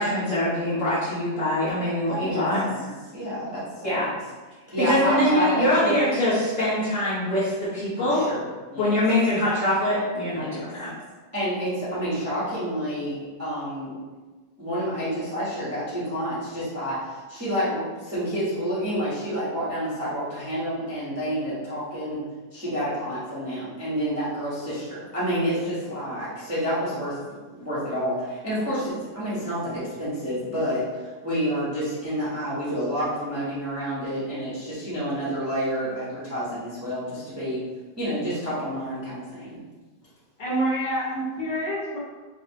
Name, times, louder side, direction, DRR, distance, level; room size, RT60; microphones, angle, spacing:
voice 1, 0.0-2.6 3.8-4.0 4.8-8.2 8.8-10.9, left 1 dB, 50° left, -10 dB, 1.2 m, -23 dB
voice 2, 2.1-4.2 4.7-5.9 8.0-8.4 8.7-8.9 10.3-10.6 11.3-13.9 14.6-22.2 22.5-27.2 27.5-37.6 38.0-39.6, equal, 10° right, -11 dB, 1.1 m, -29 dB
voice 3, 40.4-42.0, right 1 dB, 75° left, -7 dB, 1.9 m, -27 dB
5.0 x 3.0 x 3.0 m, 1.3 s
omnidirectional pair, 1.9 m